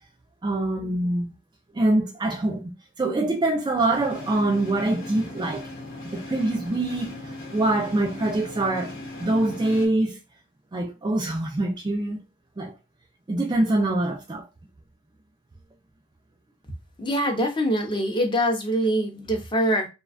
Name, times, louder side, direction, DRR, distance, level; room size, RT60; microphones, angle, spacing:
voice 1, 0.4-1.3 1.7-2.6 3.0-5.7 6.1-7.2 7.5-8.9 9.2-10.2 10.7-12.2 12.6-12.7 13.3-14.5, right 2 dB, 20° right, 0.3 m, -24 dB
sound 1, 3.9-9.9, left 1 dB, 50° left, 0.9 m, -38 dB
voice 2, 17.0-19.9, equal, 25° left, 0.6 m, -24 dB
2.4 x 2.2 x 2.4 m
head